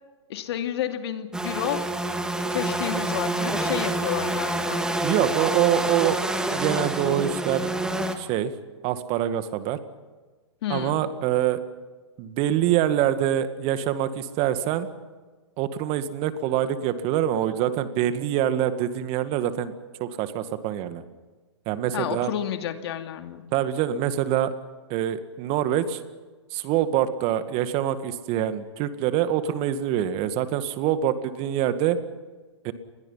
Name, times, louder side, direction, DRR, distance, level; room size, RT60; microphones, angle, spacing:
voice 1, 0.3-1.9 2.5-4.8 10.6-11.0 21.9-23.4, left 10 dB, 60° left, 7 dB, 2.7 m, -30 dB
sound 1, 1.3-8.2, right 1 dB, 5° right, 2.3 m, -27 dB
voice 2, 5.0-6.2 6.5-7.7 8.2-8.5 8.8-9.8 10.7-11.6 12.2-14.9 15.6-19.7 20.0-21.0 21.7-22.3 23.5-24.5 24.9-26.0 26.5-32.0 32.6-32.7, right 11 dB, 40° right, 11 dB, 2.0 m, -25 dB
30.0 x 21.5 x 5.8 m, 1.3 s
hypercardioid pair, 115°, 15 cm